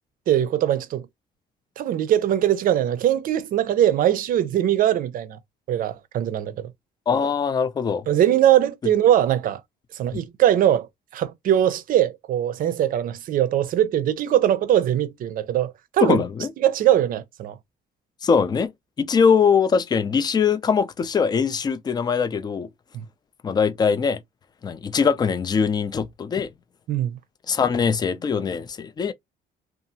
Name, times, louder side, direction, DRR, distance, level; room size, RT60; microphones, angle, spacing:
voice 1, 0.3-1.1 1.8-5.4 5.7-6.7 8.1-9.6 9.9-10.9 11.1-16.2 16.6-17.6 22.9-23.0 26.9-27.2, right 11 dB, 55° right, 0.5 m, -21 dB
voice 2, 7.1-8.1 10.1-10.2 16.0-16.5 18.2-18.7 19.0-22.7 23.4-24.2 24.6-26.5 27.5-29.1, left 6 dB, 25° left, 0.4 m, -22 dB
2.6 x 2.4 x 2.7 m
cardioid pair, 110°, 17 cm